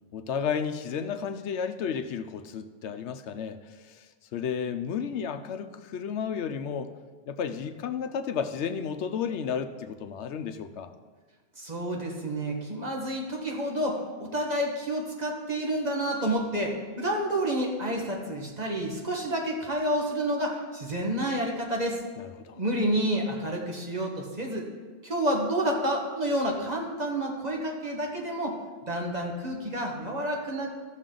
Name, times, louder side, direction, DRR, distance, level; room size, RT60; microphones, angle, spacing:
voice 1, 0.1-4.1 4.3-6.9 7.3-10.9 22.2-22.6, left 7 dB, 85° left, 9 dB, 1.0 m, -32 dB
voice 2, 11.6-22.0 22.6-24.7 25.0-28.6 28.9-30.7, right 1 dB, 40° right, 0 dB, 1.6 m, -29 dB
14.5 x 6.4 x 3.8 m, 1.4 s
omnidirectional pair, 1.1 m